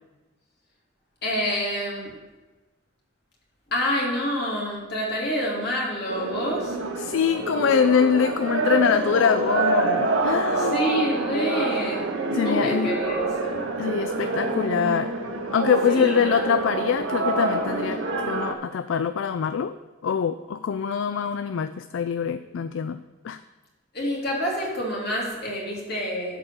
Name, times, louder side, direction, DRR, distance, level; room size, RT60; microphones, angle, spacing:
voice 1, 1.2-2.2 3.7-6.8 10.5-12.1 12.4-13.7 15.9-16.2 23.9-26.4, equal, 55° left, -3 dB, 2.8 m, -27 dB
sound 1, 6.1-18.5, right 3 dB, 80° right, 1.3 m, -26 dB
voice 2, 7.0-10.8 12.3-12.9 13.8-15.1 15.5-18.0 18.3-19.7 20.0-23.0 23.2-23.4, left 7 dB, 70° left, 12 dB, 0.3 m, -24 dB
12.0 x 4.3 x 6.7 m, 1.2 s
head